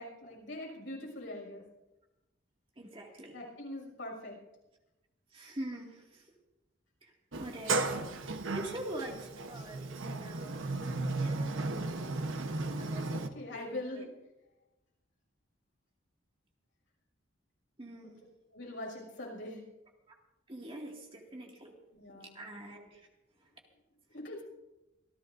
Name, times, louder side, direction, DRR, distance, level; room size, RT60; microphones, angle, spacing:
voice 1, 0.0-1.6 3.3-4.4 7.6-8.0 9.6-9.7 13.1-14.1 18.5-19.6 21.9-22.4 24.1-24.4, left 1 dB, 70° left, -1 dB, 6.1 m, -43 dB
voice 2, 2.8-3.4 5.3-6.3 7.0-7.1 7.4-8.0 8.5-12.2 12.8-14.1 17.8-18.2 20.1-20.2 20.5-21.7 22.1-23.0, right 1 dB, 30° right, 0 dB, 2.2 m, -45 dB
Sliding door, 7.3-13.3, right 3 dB, 85° right, 1.1 m, -35 dB
26.5 x 15.5 x 2.6 m, 0.99 s
head